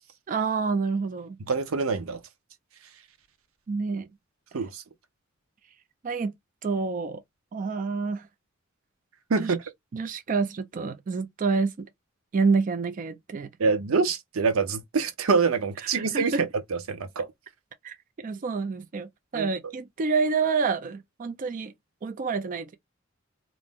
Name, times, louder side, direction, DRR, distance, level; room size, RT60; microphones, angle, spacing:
voice 1, 0.3-1.4 3.7-4.1 6.0-6.3 6.6-7.2 7.5-8.3 9.4-9.5 9.9-11.9 12.3-13.5 15.8-16.4 17.8-21.7 22.0-22.8, right 4 dB, 40° right, 0.3 m, -28 dB
voice 2, 1.5-2.2 4.5-4.8 9.3-9.6 13.6-17.3 19.3-19.5, right 4 dB, 90° right, 0.6 m, -25 dB
2.5 x 2.0 x 3.4 m
head